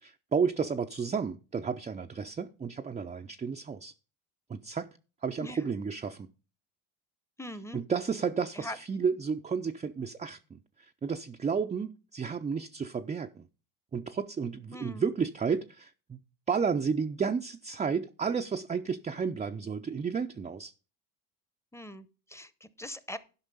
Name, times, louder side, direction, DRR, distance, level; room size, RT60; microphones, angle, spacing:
voice 1, 0.0-3.9 4.5-4.9 5.2-6.3 7.7-10.6 11.0-13.5 13.9-16.2 16.5-20.7, right 6 dB, 15° right, 0.5 m, -32 dB
voice 2, 7.4-7.8 8.5-8.8 14.7-15.1 21.7-23.2, left 1 dB, 5° left, 0.8 m, -42 dB
12.0 x 5.4 x 5.4 m
supercardioid pair, 95°, 45 cm